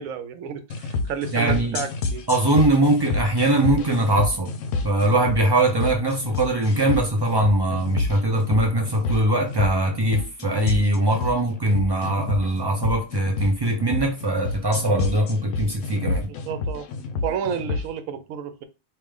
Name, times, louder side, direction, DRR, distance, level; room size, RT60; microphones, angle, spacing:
voice 1, 0.0-2.3 16.4-16.9 17.2-18.6, right 7 dB, 75° right, 1.0 m, -31 dB
sound 1, 0.7-17.9, left 3 dB, 70° left, 0.9 m, -29 dB
voice 2, 1.3-1.8 2.3-4.5 4.8-16.3, right 1 dB, 40° right, 0.3 m, -21 dB
3.2 x 2.5 x 3.6 m
omnidirectional pair, 1.4 m